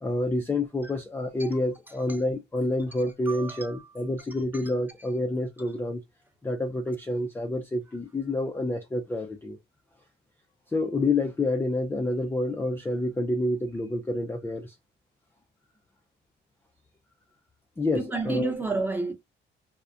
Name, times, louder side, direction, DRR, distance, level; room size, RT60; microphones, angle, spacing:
voice 1, 0.0-6.0 6.4-9.6 10.7-14.8 17.8-18.5, left 2 dB, 10° left, 0.3 m, -28 dB
voice 2, 3.3-3.9 4.5-4.6 17.9-19.1, right 3 dB, 10° right, 0.7 m, -31 dB
2.3 x 2.1 x 2.5 m
cardioid pair, 90°, 20 cm